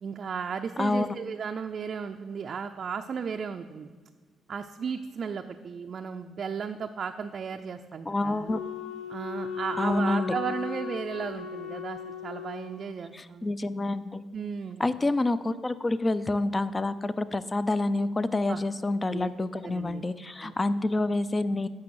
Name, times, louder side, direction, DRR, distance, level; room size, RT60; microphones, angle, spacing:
voice 1, 0.0-3.9 4.5-8.5 9.1-13.5 14.3-14.8 18.5-18.6 19.1-19.3 19.6-20.5, right 6 dB, 50° right, 4 dB, 0.4 m, -35 dB
voice 2, 8.1-8.6 9.8-10.3 13.1-14.2 14.8-21.7, left 2 dB, 25° left, 15 dB, 0.4 m, -28 dB
Wind instrument woodwind instrument, 8.5-12.8, left 7 dB, 85° left, 1.0 m, -37 dB
8.5 x 6.0 x 6.3 m, 1.5 s
cardioid pair, 90°, 0 cm